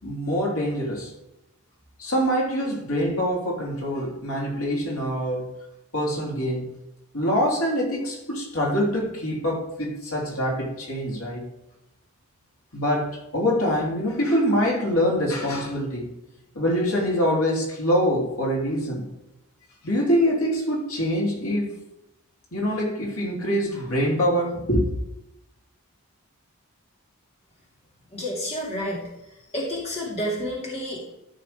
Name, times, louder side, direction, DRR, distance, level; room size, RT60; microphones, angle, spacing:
voice 1, 0.0-1.1 2.0-5.5 5.9-6.7 7.1-11.4 12.7-16.1 16.5-19.1 19.8-21.7 22.5-24.9, equal, 75° left, 3.1 m, -24 dB
voice 2, 28.1-29.0 29.5-31.1, equal, 30° left, 2.2 m, -29 dB
13.0 x 6.0 x 3.5 m
head